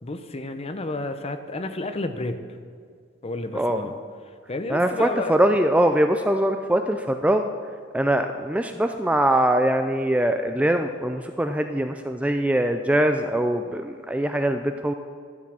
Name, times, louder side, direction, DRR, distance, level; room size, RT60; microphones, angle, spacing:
voice 1, 0.0-2.4 3.2-4.0 4.5-5.3, left 2 dB, 30° left, 8 dB, 0.7 m, -31 dB
voice 2, 3.5-3.9 4.7-7.5 7.9-14.9, right 1 dB, 5° right, 6 dB, 0.3 m, -22 dB
12.5 x 7.3 x 6.2 m, 2.1 s
head